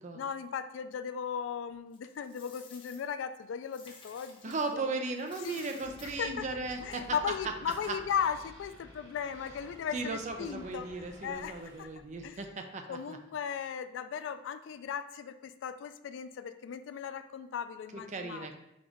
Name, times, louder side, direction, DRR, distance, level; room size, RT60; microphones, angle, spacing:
voice 1, 0.1-4.8 5.5-5.6 6.2-6.5 6.8-10.9 11.2-11.9 12.2-12.4 12.9-18.5, left 7 dB, 80° left, 11 dB, 0.3 m, -37 dB
Coin (dropping), 1.9-4.8 5.1-7.4, left 4 dB, 30° left, 0.7 m, -54 dB
voice 2, 4.4-7.3 7.7-8.0 9.9-13.2 17.9-18.5, right 3 dB, 40° right, 5 dB, 0.5 m, -37 dB
sound 1, 5.8-12.5, equal, 55° right, 1.4 m, -55 dB
Squeak, 6.7-12.0, equal, 85° right, 1.6 m, -56 dB
3.9 x 3.5 x 3.5 m, 0.87 s
head